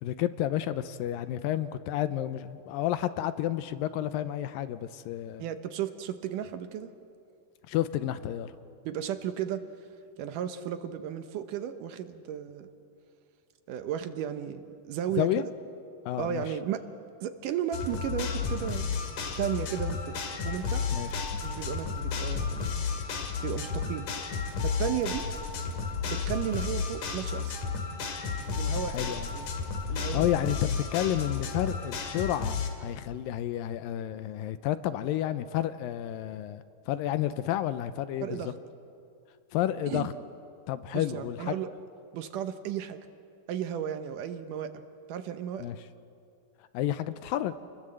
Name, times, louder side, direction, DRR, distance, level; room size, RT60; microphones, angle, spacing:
voice 1, 0.0-5.4 7.7-8.6 15.2-15.5 16.1-16.5 20.9-21.2 28.9-29.3 30.1-38.5 39.5-40.1 40.7-41.6 45.6-45.8 46.7-47.6, left 12 dB, 80° left, 12 dB, 2.4 m, -31 dB
voice 2, 5.4-6.9 8.9-9.6 10.2-12.7 13.7-15.4 16.2-16.8 17.2-18.9 19.4-20.2 20.4-20.9 21.4-22.8 23.4-24.1 24.6-25.3 26.1-27.5 28.6-29.5 29.9-30.3 38.2-38.5 39.9-40.1 40.9-41.7 42.1-43.0 43.5-44.8 45.1-45.7, right 9 dB, 70° right, 9 dB, 2.3 m, -34 dB
sound 1, 17.7-32.7, left 5 dB, 60° left, 3.4 m, -32 dB
29.0 x 21.0 x 7.8 m, 2.6 s
omnidirectional pair, 4.2 m